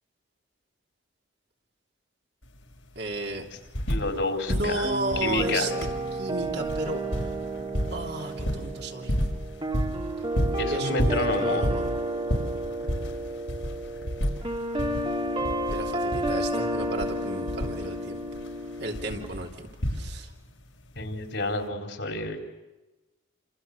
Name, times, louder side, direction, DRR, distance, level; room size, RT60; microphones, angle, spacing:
sound 1, 2.4-2.5 2.8-4.2 4.5-20.5 21.5-21.6, equal, 85° left, 5.9 m, -31 dB
voice 1, 2.9-3.4 4.5-7.3 7.9-9.2 10.7-11.9 15.7-18.2 18.8-20.3, right 2 dB, 55° right, 1 dB, 3.1 m, -34 dB
voice 2, 3.9-4.9 5.2-5.7 10.6-11.7 21.0-22.4, left 2 dB, 65° left, 3 dB, 4.3 m, -29 dB
sound 2, 4.8-19.3, right 1 dB, 30° right, 2.2 m, -31 dB
29.0 x 27.5 x 6.8 m, 1.1 s
head